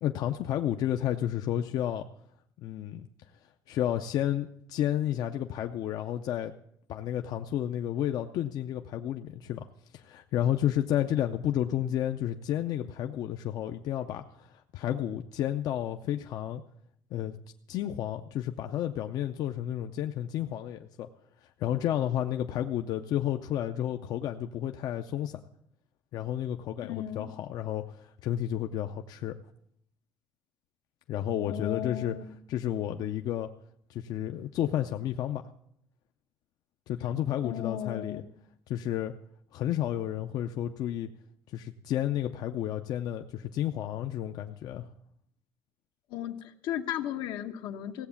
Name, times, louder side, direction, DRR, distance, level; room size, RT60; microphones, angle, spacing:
voice 1, 0.0-2.0 2.6-3.1 3.7-6.5 6.9-9.7 9.9-16.6 17.1-17.4 17.7-21.1 21.6-25.4 26.1-29.4 31.1-32.2 32.5-33.5 33.9-35.4 36.9-38.2 38.7-39.1 39.5-41.1 41.5-44.9, left 11 dB, 55° left, 6 dB, 0.5 m, -31 dB
voice 2, 26.8-27.3 31.5-32.2 37.4-38.2 46.1-48.1, left 11 dB, 80° left, 6 dB, 1.0 m, -35 dB
16.0 x 7.9 x 7.1 m, 0.71 s
cardioid pair, 160°, 8 cm